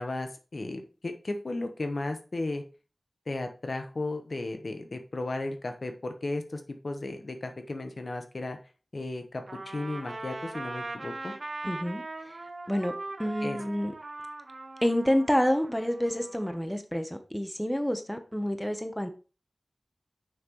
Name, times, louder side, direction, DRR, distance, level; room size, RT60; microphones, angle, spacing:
voice 1, 0.0-2.6 3.3-8.6 8.9-11.3 13.4-13.6, left 2 dB, 65° left, 6 dB, 1.1 m, -35 dB
Trumpet, 9.5-16.6, right 2 dB, 75° right, 0.9 m, -40 dB
voice 2, 11.6-12.3 12.7-12.9 13.2-13.9 14.8-19.1, equal, 5° left, 7 dB, 0.9 m, -28 dB
6.5 x 5.9 x 3.1 m, 0.34 s
wide cardioid pair, 55°, 0 cm